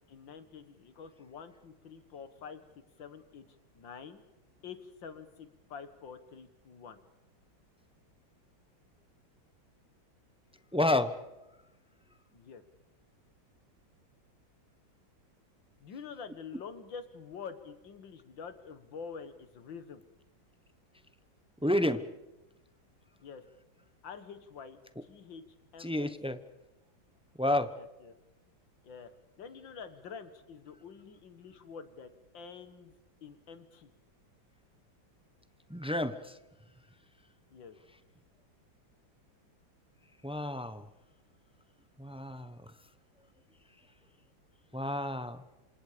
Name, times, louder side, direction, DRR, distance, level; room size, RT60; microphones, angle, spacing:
voice 1, 0.1-2.6 3.0-3.5 3.7-4.2 4.6-7.0 12.3-12.6 15.8-20.0 21.6-22.1 23.2-23.4 24.0-25.4 25.7-26.1 27.8-28.2 28.8-29.1 29.4-33.9 37.5-37.8, left 6 dB, 70° left, 11 dB, 2.3 m, -47 dB
voice 2, 10.7-11.2 21.6-22.0 25.8-26.4 27.4-27.7 35.7-36.4 40.2-40.9 42.0-42.7 44.7-45.4, left 1 dB, 10° right, 11 dB, 0.3 m, -30 dB
27.5 x 27.5 x 5.1 m, 0.98 s
omnidirectional pair, 2.2 m